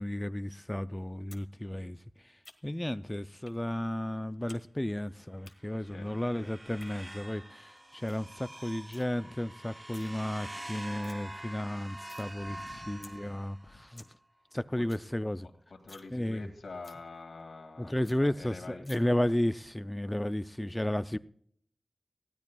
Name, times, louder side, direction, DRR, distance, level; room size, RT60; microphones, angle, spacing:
voice 1, 0.0-2.0 2.6-14.0 14.5-15.5 16.1-16.5 17.8-21.2, left 1 dB, 15° left, 0.4 m, -33 dB
sound 1, 1.3-1.5 1.8-2.9 3.5-3.6 3.9-4.6 4.9-5.5 6.6-6.9 7.4-7.5 7.8-7.9 8.1-8.3 8.6-9.1 9.7-10.1 10.5-10.6 10.8-11.2 11.5-12.3 12.6-12.7 13.0-13.1 13.5-13.6 13.8-14.1 14.5-14.6 14.8-15.1 15.4-15.5 15.8-16.1 16.4-16.5 16.8-17.0 17.4-17.5 17.7-17.8 18.0-18.2 18.8-19.0, left 2 dB, 35° left, 1.6 m, -53 dB
sound 2, 5.6-13.9, right 1 dB, 15° right, 0.8 m, -46 dB
voice 2, 12.4-12.9 13.7-13.8 15.8-18.8, left 3 dB, 80° left, 2.1 m, -46 dB
19.0 x 16.0 x 2.3 m
wide cardioid pair, 75°, 0 cm